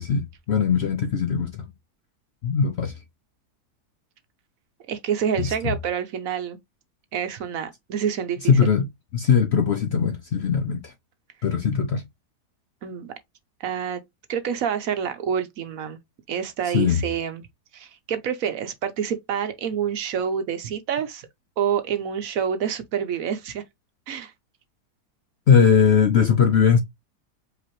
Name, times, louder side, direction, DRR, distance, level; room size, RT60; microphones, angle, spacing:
voice 1, 0.0-1.6 2.4-2.9 5.4-5.8 8.5-8.9 9.1-10.9 11.4-12.0 16.7-17.0 25.5-26.8, left 6 dB, 60° left, 0.7 m, -20 dB
voice 2, 4.9-6.6 7.1-8.5 12.8-13.1 13.6-14.0 14.3-16.0 16.3-17.4 17.7-21.3 21.6-23.6 24.1-24.3, right 8 dB, 65° right, 1.0 m, -27 dB
5.0 x 2.9 x 3.0 m
omnidirectional pair, 1.7 m